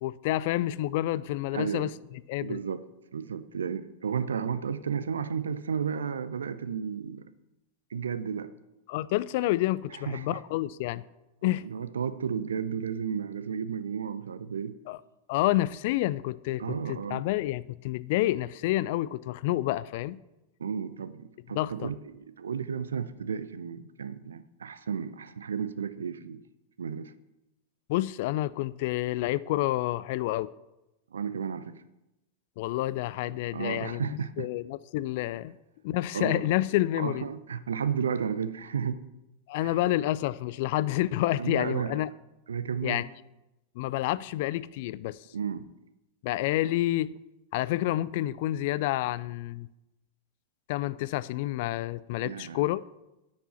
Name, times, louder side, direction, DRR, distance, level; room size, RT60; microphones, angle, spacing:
voice 1, 0.0-1.9 2.3-2.6 8.9-11.0 11.4-11.7 14.9-15.0 15.3-20.2 21.5-21.9 27.9-30.5 32.6-34.1 34.4-35.5 35.8-37.3 39.5-42.1 42.8-43.0 43.8-45.2 46.2-47.1 47.5-49.7 50.7-52.8, left 15 dB, 50° left, 0.3 m, -29 dB
voice 2, 1.5-1.9 2.4-2.9 3.1-7.3 7.9-8.5 10.0-10.4 11.4-14.8 16.6-17.3 20.6-26.4 26.8-27.1 31.1-31.8 33.5-34.5 36.1-36.5 37.0-39.0 39.6-39.8 41.4-42.0 42.5-43.0 45.3-45.7 52.2-52.6, right 7 dB, 70° right, 0.6 m, -33 dB
9.3 x 8.4 x 5.8 m
figure-of-eight pair, 90°, 0 cm